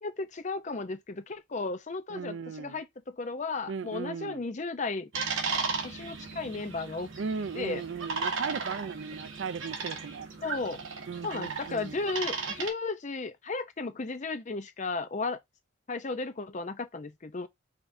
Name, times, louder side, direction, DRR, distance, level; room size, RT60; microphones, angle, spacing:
voice 1, 0.0-5.1 5.8-7.1 7.5-7.8 10.4-10.8 11.2-15.4 15.9-17.5, left 3 dB, 40° left, 0.6 m, -34 dB
voice 2, 2.1-2.8 3.7-4.4 7.2-10.3 11.1-12.0, right 5 dB, 70° right, 0.4 m, -37 dB
sound 1, 5.1-12.7, right 4 dB, 85° right, 1.2 m, -35 dB
5.0 x 3.5 x 2.6 m
head